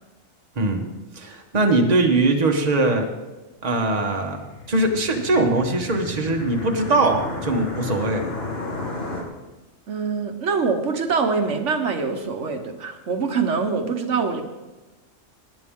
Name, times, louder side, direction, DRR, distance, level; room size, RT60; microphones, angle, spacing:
voice 1, 0.6-0.9 1.2-3.1 3.6-8.3, right 2 dB, 35° right, 3 dB, 1.3 m, -21 dB
sound 1, 4.2-9.2, left 2 dB, 55° left, 2.0 m, -32 dB
voice 2, 9.9-14.4, right 5 dB, 80° right, 5 dB, 1.3 m, -24 dB
18.5 x 10.0 x 3.7 m, 1.1 s
omnidirectional pair, 1.2 m